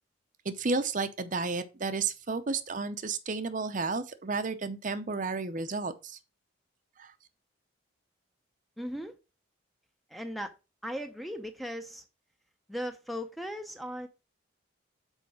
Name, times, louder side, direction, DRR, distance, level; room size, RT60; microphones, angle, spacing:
voice 1, 0.5-6.2 7.0-7.1, right 4 dB, 40° right, 0.6 m, -32 dB
voice 2, 8.8-9.2 10.1-10.5 10.8-12.0 12.7-14.1, equal, ahead, 0.5 m, -37 dB
6.3 x 4.7 x 4.8 m
head